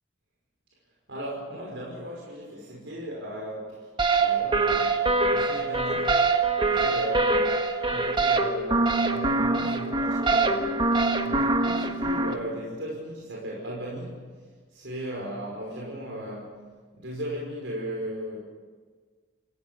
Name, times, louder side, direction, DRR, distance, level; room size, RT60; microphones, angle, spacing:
voice 1, 1.1-3.9 4.2-6.1 6.6-7.5 7.9-10.8 11.2-14.2 14.7-16.6 16.9-18.4, equal, 80° right, -3 dB, 5.5 m, -36 dB
sound 1, 4.0-12.3, right 3 dB, 25° right, 1.5 m, -24 dB
28.0 x 16.5 x 7.1 m, 1.5 s
head